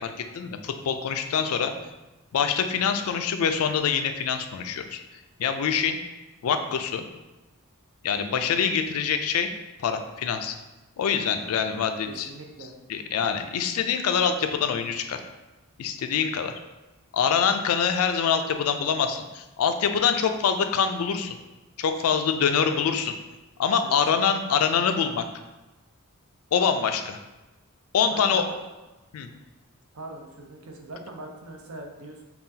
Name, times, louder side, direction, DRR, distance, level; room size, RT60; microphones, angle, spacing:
voice 1, 0.0-1.7 2.3-5.0 5.4-6.0 6.4-7.0 8.0-9.5 9.8-10.5 11.0-12.3 12.9-15.2 15.8-16.5 17.1-21.3 21.8-23.1 23.6-25.2 26.5-27.2 27.9-28.4 29.1-29.3, left 7 dB, 75° left, 7 dB, 0.4 m, -25 dB
voice 2, 11.4-11.8 12.1-12.7 23.8-24.0 28.1-28.6 29.9-32.2, right 2 dB, 70° right, 2 dB, 0.6 m, -42 dB
5.5 x 2.4 x 2.7 m, 1.1 s
head